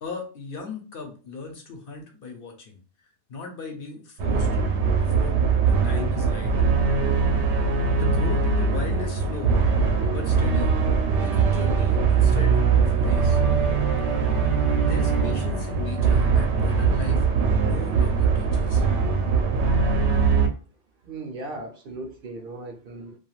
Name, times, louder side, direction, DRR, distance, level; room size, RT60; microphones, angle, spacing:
voice 1, 0.0-2.8 3.3-4.5 4.9-6.6 7.9-9.6 10.1-10.8 11.2-13.4 14.8-17.3 17.6-18.9, left 4 dB, 60° left, 2 dB, 0.8 m, -37 dB
sound 1, 4.2-20.5, right 5 dB, 90° right, 0.9 m, -21 dB
voice 2, 21.0-23.2, right 2 dB, 60° right, 3 dB, 0.7 m, -37 dB
2.4 x 2.3 x 3.0 m, 0.37 s
omnidirectional pair, 1.1 m